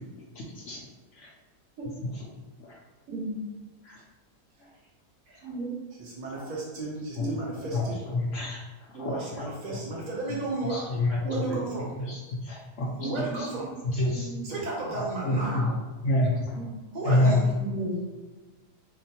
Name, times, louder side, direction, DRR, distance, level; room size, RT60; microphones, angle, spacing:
voice 1, 3.1-3.4 5.3-5.7 7.1-7.3 8.9-9.1 11.2-11.9 13.0-13.8 14.1-14.6 15.3-15.6 16.5-18.0, right 3 dB, 75° right, -5 dB, 1.6 m, -36 dB
voice 2, 6.1-8.0 8.9-10.9 11.3-11.9 13.0-13.7 14.4-15.8 16.9-17.5, right 2 dB, 55° right, -4 dB, 0.4 m, -34 dB
voice 3, 7.7-8.6 9.0-9.4 10.7-11.2 12.0-12.9 13.9-14.3 14.9-15.7 16.0-16.3 17.0-17.4, left 1 dB, 65° left, -2 dB, 0.8 m, -27 dB
5.8 x 2.1 x 2.8 m, 1.2 s
omnidirectional pair, 1.7 m